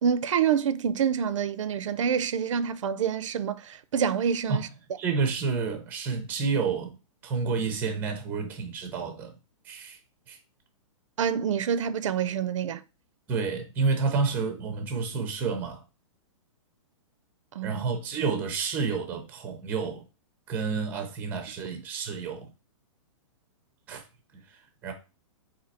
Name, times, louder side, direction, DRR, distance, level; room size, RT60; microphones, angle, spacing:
voice 1, 0.0-4.7 11.2-12.8 17.5-17.8, right 7 dB, 70° right, 0.5 m, -27 dB
voice 2, 5.0-7.0 7.2-9.3 9.7-10.0 10.3-10.4 13.3-15.8 17.6-20.0 20.5-22.5 23.9-24.0 24.8-24.9, right 5 dB, 10° right, 0.5 m, -29 dB
4.3 x 2.7 x 4.1 m
hypercardioid pair, 175°, 17 cm